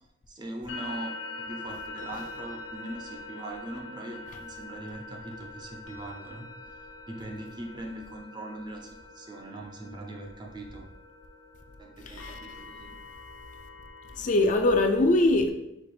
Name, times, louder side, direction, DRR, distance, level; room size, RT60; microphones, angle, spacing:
voice 1, 0.3-6.5 7.1-10.9 11.8-13.0 14.2-14.3, right 1 dB, 25° right, 0.5 m, -41 dB
sound 1, 0.7-14.2, left 3 dB, 75° left, 0.7 m, -44 dB
voice 2, 12.0-12.4 14.1-15.5, left 2 dB, 40° left, 0.4 m, -22 dB
4.3 x 2.4 x 4.6 m
head